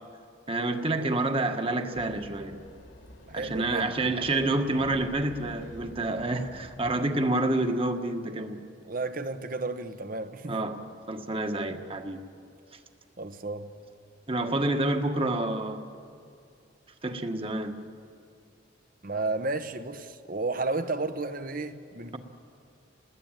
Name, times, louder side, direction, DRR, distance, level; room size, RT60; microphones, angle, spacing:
voice 1, 0.5-2.6 3.3-8.7 10.5-12.2 14.3-15.9 17.0-17.8, right 2 dB, 30° right, 6 dB, 1.6 m, -28 dB
sound 1, 1.9-6.9, equal, 80° left, 3.1 m, -48 dB
voice 2, 3.3-4.2 8.9-10.6 13.2-13.7 19.0-22.2, right 3 dB, 45° right, 10 dB, 1.3 m, -32 dB
30.0 x 20.0 x 9.1 m, 2.4 s
head